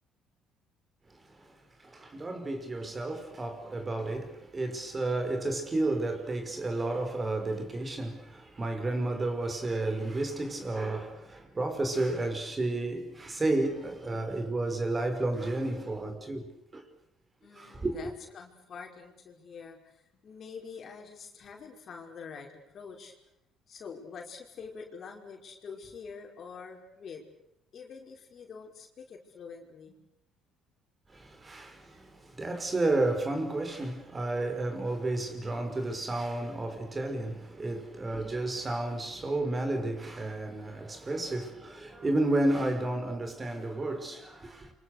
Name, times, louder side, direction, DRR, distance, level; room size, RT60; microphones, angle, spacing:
voice 1, 1.8-16.8 17.6-18.0 31.1-44.7, right 2 dB, 30° right, 5.4 m, -32 dB
voice 2, 17.4-23.1 23.7-27.3 27.7-30.0, left 5 dB, 50° left, 5.2 m, -46 dB
28.5 x 25.0 x 6.7 m
supercardioid pair, 65°, 0 cm